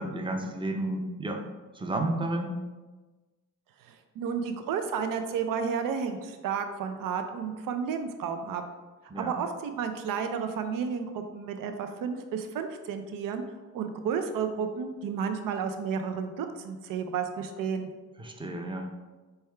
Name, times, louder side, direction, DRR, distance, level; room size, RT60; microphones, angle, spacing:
voice 1, 0.0-1.4 1.7-2.6 9.1-9.4 18.2-18.9, right 1 dB, 15° right, 3 dB, 0.6 m, -32 dB
voice 2, 3.8-8.6 9.2-13.4 13.7-17.9, right 6 dB, 85° right, 6 dB, 0.5 m, -32 dB
4.4 x 3.4 x 3.3 m, 1.3 s
cardioid pair, 90°, 32 cm